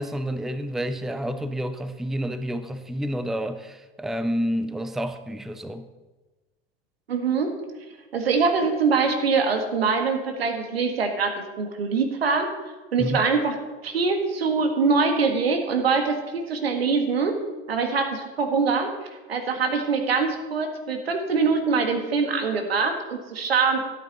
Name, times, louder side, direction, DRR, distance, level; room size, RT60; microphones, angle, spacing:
voice 1, 0.0-5.9 13.0-13.2, equal, ahead, 0.6 m, -29 dB
voice 2, 7.1-7.6 8.1-12.5 12.9-13.6 13.8-17.3 17.7-18.9 19.3-23.8, right 4 dB, 85° right, 1.7 m, -23 dB
13.5 x 8.3 x 4.0 m
hypercardioid pair, 90°, 29 cm